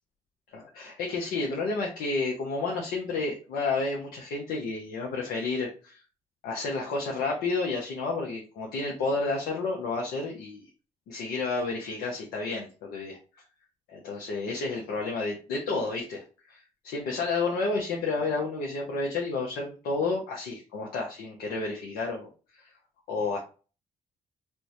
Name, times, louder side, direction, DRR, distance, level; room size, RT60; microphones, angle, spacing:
voice 1, 0.5-6.0 6.4-10.7 11.1-13.2 13.9-22.3 22.6-22.7 23.1-23.4, left 3 dB, 85° left, 0 dB, 0.7 m, -31 dB
4.4 x 2.1 x 2.6 m, 0.36 s
supercardioid pair, 60°, 16 cm